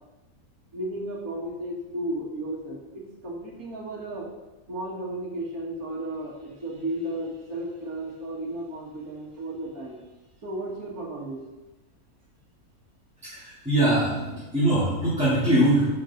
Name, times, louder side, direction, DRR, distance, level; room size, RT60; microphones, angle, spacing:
voice 1, 0.7-4.3 4.7-10.0 10.4-11.4, right 1 dB, 70° right, -4 dB, 2.2 m, -34 dB
voice 2, 13.2-15.9, right 1 dB, 5° right, -12 dB, 3.0 m, -22 dB
11.0 x 6.6 x 3.9 m, 1.1 s
omnidirectional pair, 1.6 m